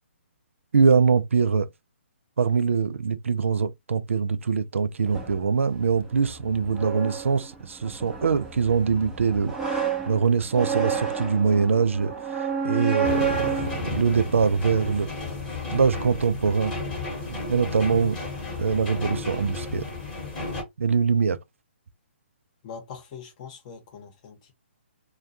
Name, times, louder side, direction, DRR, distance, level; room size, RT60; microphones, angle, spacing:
voice 1, 0.7-1.7 2.4-15.1 15.7-16.7 17.3-18.2 18.6-19.9 20.8-21.4, right 5 dB, 85° right, 0.4 m, -23 dB
sound 1, 5.1-15.0, right 6 dB, 10° right, 0.6 m, -31 dB
sound 2, 13.0-20.6, left 3 dB, 15° left, 1.1 m, -33 dB
voice 2, 22.6-24.5, left 6 dB, 35° left, 0.9 m, -42 dB
2.3 x 2.2 x 2.6 m
hypercardioid pair, 150°, 7 cm